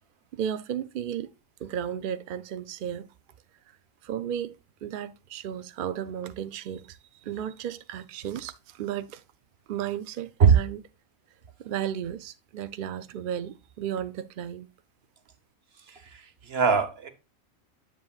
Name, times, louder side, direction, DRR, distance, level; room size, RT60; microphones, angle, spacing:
voice 1, 0.3-1.3 1.6-3.1 3.7-3.8 4.0-9.2 9.7-10.8 11.6-14.7, right 9 dB, 70° right, 0.5 m, -34 dB
voice 2, 15.9-16.2 16.5-17.1, right 6 dB, 50° right, 1.2 m, -21 dB
10.0 x 6.9 x 2.4 m
omnidirectional pair, 1.4 m